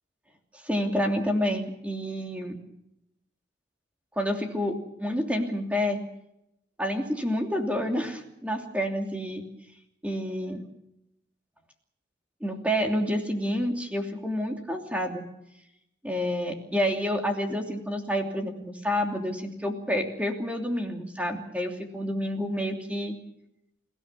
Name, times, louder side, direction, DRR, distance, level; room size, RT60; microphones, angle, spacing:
voice 1, 0.6-2.6 4.2-6.0 6.8-9.4 10.0-10.6 12.4-15.2 16.0-23.1, equal, 5° right, 2 dB, 2.9 m, -29 dB
29.5 x 17.0 x 6.9 m, 0.84 s
head